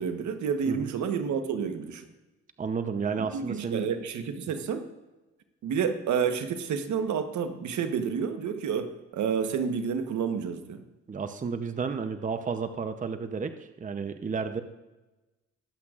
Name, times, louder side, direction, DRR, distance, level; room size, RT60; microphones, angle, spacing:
voice 1, 0.0-2.0 3.2-4.9 5.6-10.8, right 6 dB, 70° right, 7 dB, 1.2 m, -30 dB
voice 2, 2.6-3.9 11.1-14.6, right 5 dB, 25° right, 8 dB, 0.7 m, -32 dB
20.5 x 7.9 x 2.5 m, 1.1 s
cardioid pair, 90°, 30 cm